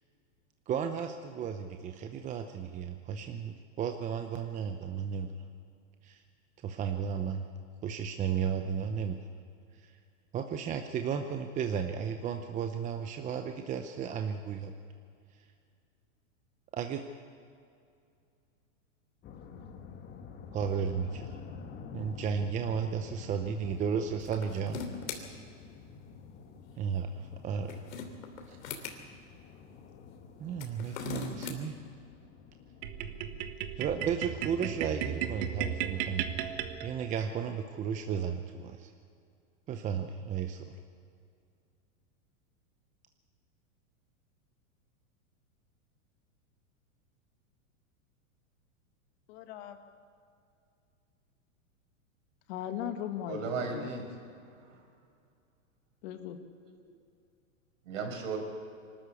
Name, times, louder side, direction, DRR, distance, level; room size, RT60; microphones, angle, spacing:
voice 1, 0.7-5.3 6.0-6.2 6.6-7.5 7.8-9.2 9.7-9.9 10.3-14.7 16.7-17.0 20.5-21.4 21.9-24.8 26.8-27.8 28.5-28.6 30.4-31.8 33.8-38.9 39.7-40.6, right 7 dB, 20° right, 6 dB, 0.7 m, -34 dB
sound 1, 19.2-36.9, left 5 dB, 25° left, 1.5 m, -49 dB
sound 2, 24.2-25.2 27.4-29.0 30.5-31.6, left 6 dB, 70° left, 3.1 m, -39 dB
sound 3, 32.8-37.3, right 10 dB, 45° right, 1.4 m, -35 dB
voice 2, 49.3-49.8 52.5-53.9 56.0-56.4, left 9 dB, 50° left, 7 dB, 1.8 m, -38 dB
voice 3, 53.3-54.1 54.7-54.8 56.6-56.7 57.9-58.4, right 4 dB, 65° right, 4 dB, 5.4 m, -35 dB
24.0 x 13.0 x 8.4 m, 2.4 s
hypercardioid pair, 140°, 41 cm